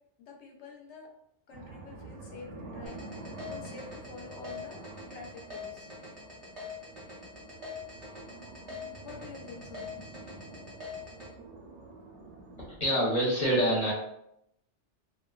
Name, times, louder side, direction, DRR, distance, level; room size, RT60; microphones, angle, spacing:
voice 1, 0.2-1.1 1.5-4.8 5.1-5.9 9.0-9.9, left 4 dB, 75° left, 0 dB, 0.9 m, -47 dB
sound 1, 1.5-12.6, right 3 dB, 85° right, 0.9 m, -47 dB
sound 2, 2.9-11.3, left 4 dB, 35° right, 0.6 m, -43 dB
voice 2, 12.7-13.9, equal, 40° left, -5 dB, 0.7 m, -26 dB
2.4 x 2.2 x 2.2 m, 0.77 s
omnidirectional pair, 1.2 m